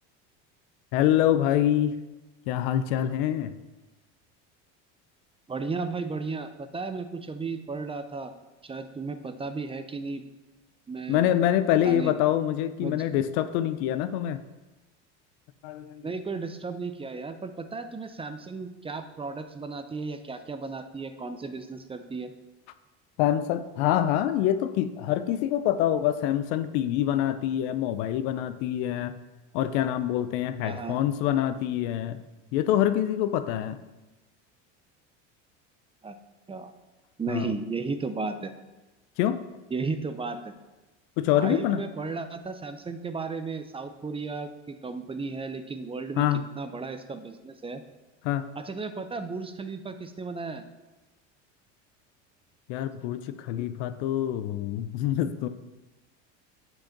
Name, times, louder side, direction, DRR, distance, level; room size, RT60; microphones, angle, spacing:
voice 1, 0.9-2.0 2.5-3.5 11.1-14.4 15.6-16.1 23.2-29.2 29.5-32.2 32.5-33.8 37.3-37.5 39.2-39.4 41.2-41.8 46.2-46.4 48.2-48.5 52.7-55.5, left 11 dB, 65° left, 12 dB, 0.6 m, -25 dB
voice 2, 5.5-8.3 8.6-10.2 10.9-11.3 11.8-12.1 12.8-13.1 16.0-22.3 30.6-31.0 36.0-36.2 36.5-36.7 37.2-38.5 39.7-40.6 41.3-46.2 46.6-47.8 48.6-50.6, right 4 dB, 15° right, 9 dB, 0.5 m, -34 dB
7.8 x 4.6 x 5.9 m, 1.1 s
supercardioid pair, 95°, 36 cm